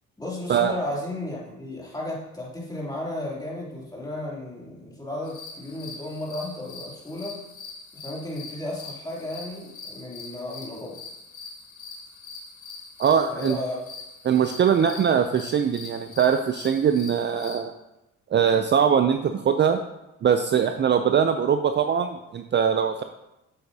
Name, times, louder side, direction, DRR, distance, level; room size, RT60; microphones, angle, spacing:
voice 1, 0.2-7.4 7.9-11.0 13.3-13.8, left 1 dB, 10° left, -5 dB, 2.9 m, -34 dB
sound 1, 5.2-17.6, left 4 dB, 80° left, 1.8 m, -43 dB
voice 2, 13.0-13.6 14.2-17.7 18.3-19.8 20.2-23.0, right 7 dB, 40° right, 7 dB, 0.4 m, -22 dB
8.1 x 7.9 x 2.8 m, 0.94 s
cardioid pair, 90°, 30 cm